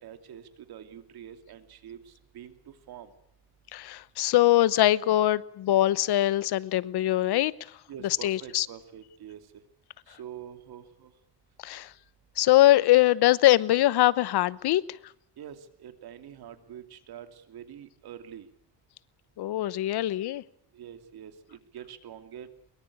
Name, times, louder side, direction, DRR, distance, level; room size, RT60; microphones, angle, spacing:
voice 1, 0.0-3.1 7.9-9.5 10.1-11.1 15.4-18.5 20.7-22.5, right 9 dB, 70° right, 2.8 m, -45 dB
voice 2, 3.7-7.5 8.2-8.7 11.6-11.9 12.4-14.8 19.4-20.4, left 15 dB, 80° left, 1.0 m, -22 dB
23.0 x 22.5 x 8.6 m
cardioid pair, 145°, 38 cm